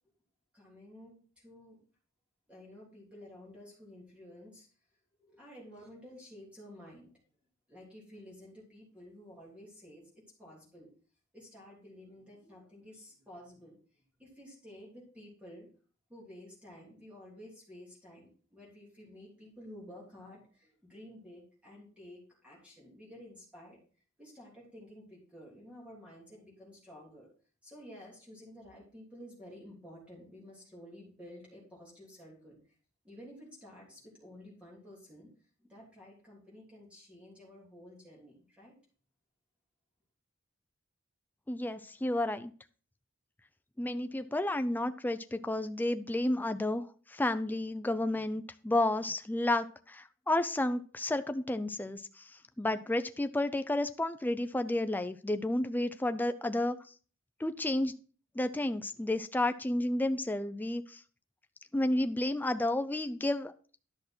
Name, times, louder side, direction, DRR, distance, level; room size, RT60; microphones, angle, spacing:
voice 1, 0.5-1.8 2.5-4.7 5.2-7.1 7.7-10.9 11.3-13.8 14.2-15.7 16.1-23.8 24.2-27.3 27.6-32.6 33.0-35.3 35.6-38.7, left 1 dB, 5° right, -5 dB, 3.3 m, -52 dB
voice 2, 41.5-42.5 43.8-52.2 52.6-56.8 57.4-57.9 58.4-61.0 61.7-63.5, left 1 dB, 10° left, 9 dB, 0.4 m, -31 dB
10.5 x 6.4 x 4.3 m, 0.40 s
head